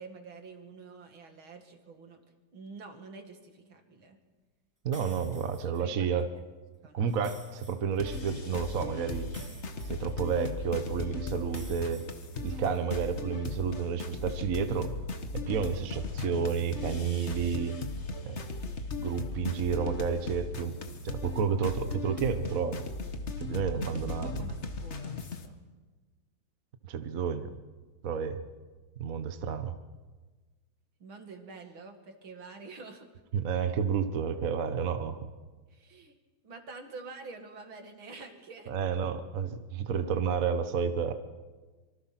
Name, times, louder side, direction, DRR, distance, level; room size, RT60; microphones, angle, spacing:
voice 1, 0.0-2.2 2.5-4.2 5.8-6.1 6.8-7.1 23.7-25.6 31.0-33.1 35.7-36.2 36.4-38.7, right 4 dB, 75° right, 5 dB, 2.9 m, -47 dB
voice 2, 4.8-6.3 6.9-9.3 9.9-12.0 12.4-14.9 15.5-17.7 18.2-18.5 19.0-20.7 21.0-22.9 23.4-24.3 26.9-27.5 28.0-28.4 29.0-29.7 33.3-35.2 38.7-41.1, right 7 dB, 50° right, 9 dB, 1.4 m, -31 dB
sound 1, 4.9-5.8 7.1-8.3 9.3-10.6 11.5-12.8, right 1 dB, 10° right, 2.0 m, -53 dB
sound 2, 8.0-25.5, left 3 dB, 35° left, 1.5 m, -37 dB
25.5 x 24.0 x 5.9 m, 1.3 s
omnidirectional pair, 2.2 m